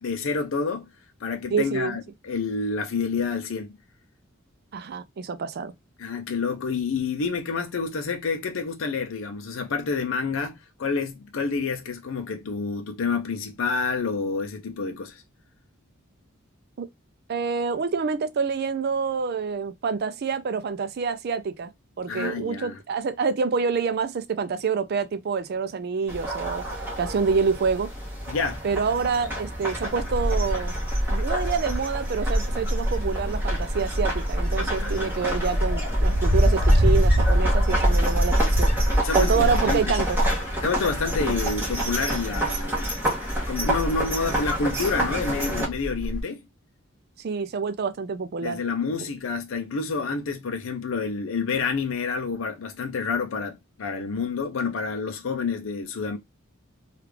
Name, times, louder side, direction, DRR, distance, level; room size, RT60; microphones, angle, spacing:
voice 1, 0.0-0.9 1.2-3.8 6.0-15.2 22.1-22.8 28.3-28.6 34.8-35.4 39.0-39.9 40.6-43.0 43.5-46.4 48.4-56.2, left 4 dB, 65° left, 0.5 m, -28 dB
voice 2, 1.5-2.0 4.7-5.7 16.8-16.9 17.3-21.7 22.0-27.9 28.6-30.7 31.1-38.7 39.1-40.2 41.2-41.4 47.2-48.6, right 5 dB, 50° right, 0.4 m, -27 dB
sound 1, 26.1-45.7, right 1 dB, 10° right, 1.0 m, -30 dB
Wind, 29.9-46.2, equal, 20° left, 1.1 m, -25 dB
3.2 x 2.4 x 3.3 m
head